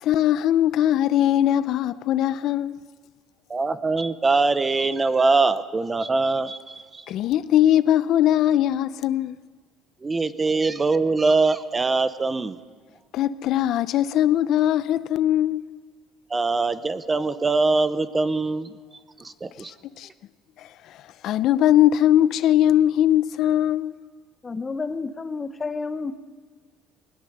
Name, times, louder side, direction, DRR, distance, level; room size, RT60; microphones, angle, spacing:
voice 1, 0.0-2.7 7.1-9.4 13.1-15.6 20.0-20.1 20.6-20.7 21.2-24.0, left 11 dB, 55° left, 0.5 m, -20 dB
voice 2, 3.5-7.0 10.0-12.6 16.3-18.8 19.2-19.7, right 3 dB, 15° right, 0.8 m, -23 dB
voice 3, 24.4-26.1, left 4 dB, 20° left, 0.9 m, -30 dB
21.0 x 20.0 x 6.7 m
cardioid pair, 150°, 0 cm